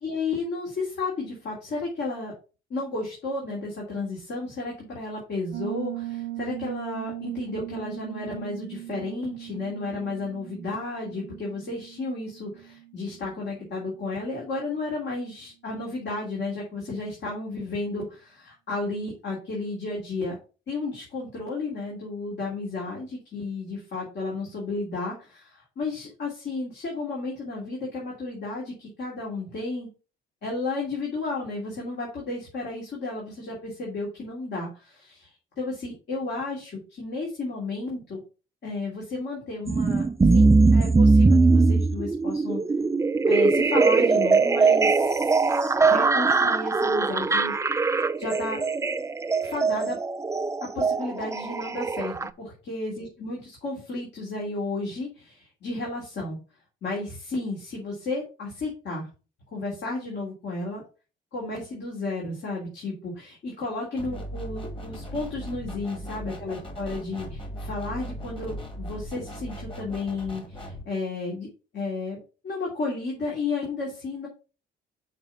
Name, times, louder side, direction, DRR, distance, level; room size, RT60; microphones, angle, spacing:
voice 1, 0.0-2.3 2.7-20.4 20.7-29.9 30.4-38.2 38.6-42.6 43.2-47.5 48.2-48.6 49.4-50.0 50.6-56.4 56.8-59.1 59.5-60.8 61.3-71.5 71.7-72.2 72.4-74.3, left 3 dB, 60° left, -3 dB, 2.8 m, -33 dB
Piano, 5.5-14.0, right 15 dB, 60° right, 0.7 m, -39 dB
sound 1, 39.7-52.3, right 3 dB, 15° right, 0.4 m, -21 dB
sound 2, 64.0-70.8, equal, 25° left, 1.9 m, -38 dB
5.9 x 4.3 x 5.5 m, 0.34 s
cardioid pair, 90°, 20 cm